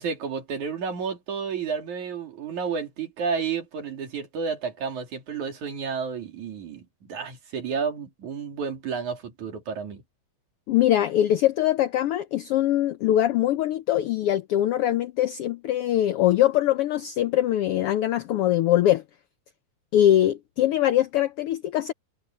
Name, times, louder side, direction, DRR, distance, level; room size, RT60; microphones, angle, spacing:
voice 1, 0.0-10.0, right 6 dB, 75° right, 4.4 m, -31 dB
voice 2, 10.7-19.0 19.9-21.9, left 12 dB, 85° left, 1.3 m, -22 dB
omnidirectional pair, 3.4 m